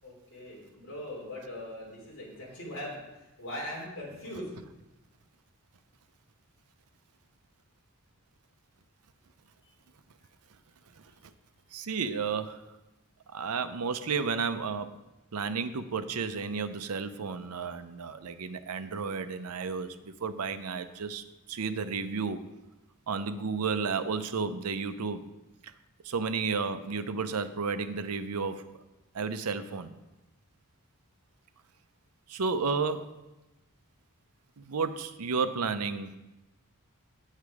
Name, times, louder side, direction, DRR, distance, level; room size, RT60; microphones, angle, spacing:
voice 1, 0.0-3.0 3.4-4.6, left 1 dB, 60° left, -5 dB, 3.2 m, -40 dB
voice 2, 11.7-12.6 13.3-14.9 15.3-22.4 23.1-25.2 26.0-28.7 29.1-29.9 32.3-33.1 34.6-36.1, right 5 dB, 85° right, 10 dB, 0.6 m, -32 dB
8.6 x 7.4 x 4.8 m, 1.0 s
head